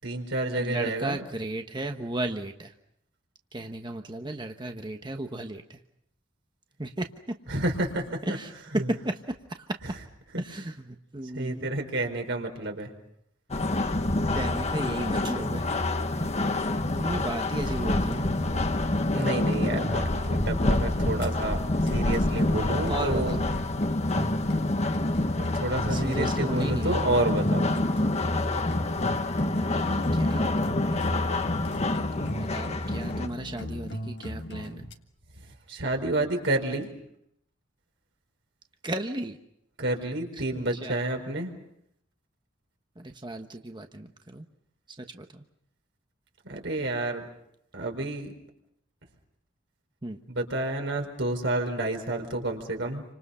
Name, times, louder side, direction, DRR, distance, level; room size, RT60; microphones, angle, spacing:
voice 1, 0.0-1.2 7.5-8.2 8.7-8.8 10.3-10.4 11.3-12.9 19.1-23.4 25.4-27.7 35.7-36.9 39.8-41.5 46.5-47.2 47.7-48.3 50.3-53.0, right 2 dB, 65° right, 4 dB, 4.6 m, -29 dB
voice 2, 0.6-2.7 3.5-5.8 6.8-7.4 8.2-10.0 10.4-11.7 13.8-13.9 14.3-15.7 16.9-18.3 22.8-23.4 24.1-24.3 25.9-27.1 29.7-31.4 32.2-34.9 38.8-39.4 40.5-41.0 42.9-44.5 44.9-45.4 50.0-50.2, right 1 dB, 25° right, 5 dB, 1.2 m, -35 dB
sound 1, 13.5-33.3, left 2 dB, 35° left, 1.3 m, -27 dB
sound 2, 17.7-34.9, left 1 dB, 60° left, 1.7 m, -38 dB
29.5 x 26.0 x 5.7 m, 0.75 s
head